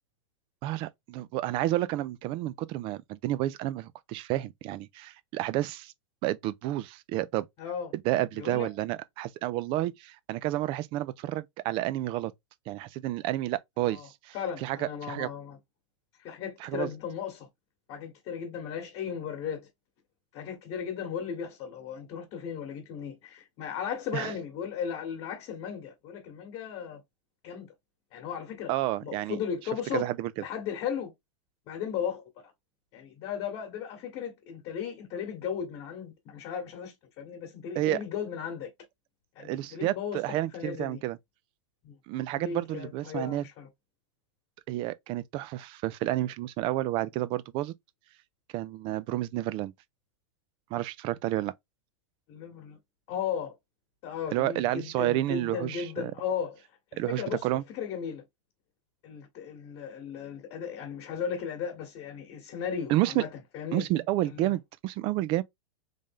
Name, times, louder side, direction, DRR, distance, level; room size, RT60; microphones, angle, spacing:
voice 1, 0.6-5.9 6.2-7.5 8.0-12.3 12.7-14.4 14.6-15.3 16.6-16.9 24.1-24.3 28.7-29.4 29.9-30.3 37.8-38.0 39.4-41.2 42.1-43.4 44.7-47.7 48.5-49.7 50.7-51.5 54.3-56.1 57.0-57.6 62.9-63.2 63.7-65.4, right 15 dB, 35° right, 0.3 m, -30 dB
voice 2, 7.6-7.9 8.4-8.7 13.8-14.1 14.3-15.6 16.2-17.5 17.9-19.6 20.3-27.0 27.4-27.7 28.1-28.7 29.0-30.1 30.4-31.1 31.7-32.5 32.9-38.7 39.3-41.0 41.8-42.0 42.3-43.7 52.3-52.8 53.1-53.6 54.0-56.6 56.9-58.2 59.0-63.3 63.5-63.9 64.2-64.6, left 7 dB, 40° left, 1.2 m, -36 dB
3.3 x 2.6 x 3.5 m
supercardioid pair, 140°, 16 cm